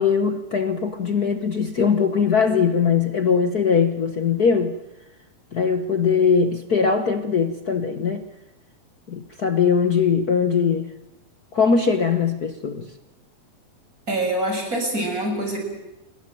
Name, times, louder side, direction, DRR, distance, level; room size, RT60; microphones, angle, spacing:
voice 1, 0.0-4.8 5.5-8.2 9.1-10.9 11.5-12.9, left 6 dB, 60° left, 8 dB, 1.0 m, -21 dB
voice 2, 14.1-15.6, right 1 dB, 25° right, 4 dB, 6.9 m, -25 dB
28.5 x 22.5 x 9.2 m, 0.94 s
omnidirectional pair, 3.5 m